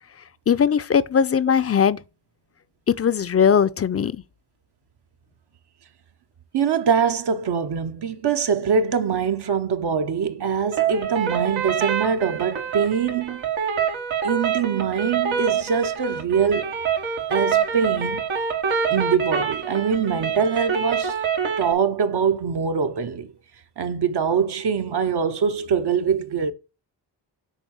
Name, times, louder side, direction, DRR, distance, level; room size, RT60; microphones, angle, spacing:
voice 1, 0.5-2.0 2.9-4.2, left 7 dB, 30° left, 0.6 m, -19 dB
voice 2, 6.5-13.4 14.2-16.8 17.3-18.3 18.9-21.2 21.6-23.3 23.8-26.5, right 6 dB, 55° right, 1.0 m, -23 dB
sound 1, 10.7-21.7, right 7 dB, 80° right, 1.6 m, -26 dB
8.0 x 3.5 x 6.3 m
cardioid pair, 75°, 47 cm